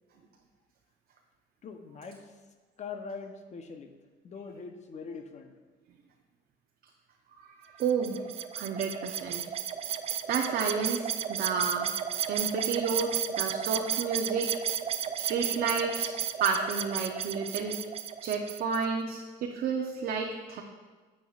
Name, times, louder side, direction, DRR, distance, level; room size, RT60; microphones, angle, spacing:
voice 1, 1.6-2.3 2.8-3.9 4.2-5.5, left 5 dB, 45° left, 6 dB, 0.8 m, -42 dB
voice 2, 7.4-8.2 8.5-9.5 10.0-11.9 12.3-14.5 15.1-16.1 16.4-17.8 18.2-20.6, right 5 dB, 60° right, 1 dB, 0.7 m, -31 dB
sound 1, 7.8-18.8, right 8 dB, 40° right, 0.4 m, -33 dB
9.2 x 7.5 x 2.4 m, 1.4 s
cardioid pair, 110°, 17 cm